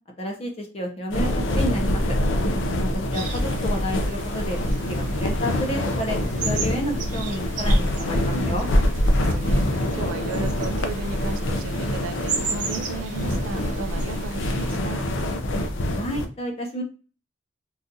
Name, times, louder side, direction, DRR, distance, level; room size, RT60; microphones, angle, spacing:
voice 1, 0.2-2.2 2.7-6.2 6.4-8.7 15.9-16.8, equal, 30° left, 2 dB, 0.5 m, -30 dB
sound 1, 1.1-16.3, left 1 dB, 75° left, 0.5 m, -25 dB
voice 2, 2.4-2.8 9.0-15.1, right 4 dB, 85° right, 9 dB, 0.4 m, -35 dB
sound 2, 3.1-14.8, right 5 dB, 40° right, 0.6 m, -36 dB
3.8 x 2.3 x 2.6 m, 0.36 s
head